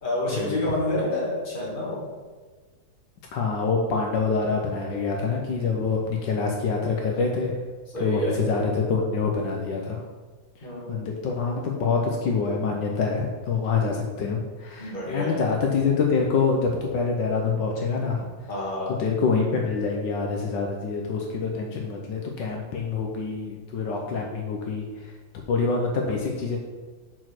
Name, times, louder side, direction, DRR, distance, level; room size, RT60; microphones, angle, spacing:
voice 1, 0.0-2.0 7.9-8.4 10.6-11.0 14.8-15.4 18.5-19.0, left 1 dB, 25° left, -4 dB, 1.9 m, -28 dB
voice 2, 3.3-7.5 8.0-10.0 10.9-18.3 19.0-25.1 25.5-26.6, left 4 dB, 75° left, 0 dB, 1.4 m, -26 dB
6.4 x 4.5 x 5.9 m, 1.4 s
omnidirectional pair, 2.1 m